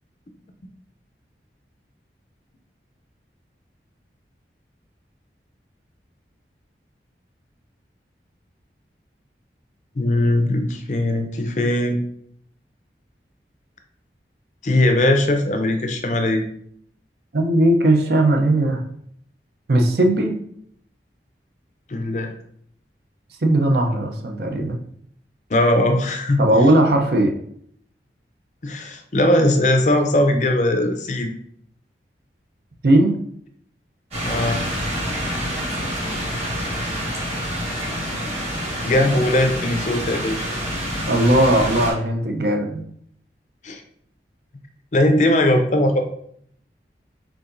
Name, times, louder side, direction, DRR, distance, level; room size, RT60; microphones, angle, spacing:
voice 1, 10.0-12.0 14.6-16.4 21.9-22.3 25.5-26.4 28.6-31.3 34.2-34.6 38.8-40.5 43.6-43.8 44.9-46.0, left 1 dB, 40° left, 5 dB, 0.5 m, -19 dB
voice 2, 17.3-18.8 19.7-20.3 23.4-24.8 26.4-27.3 32.8-33.2 41.1-42.9, right 1 dB, 65° right, 3 dB, 0.6 m, -18 dB
sound 1, 34.1-41.9, equal, 35° right, 1.6 m, -27 dB
4.7 x 3.8 x 2.6 m, 0.66 s
head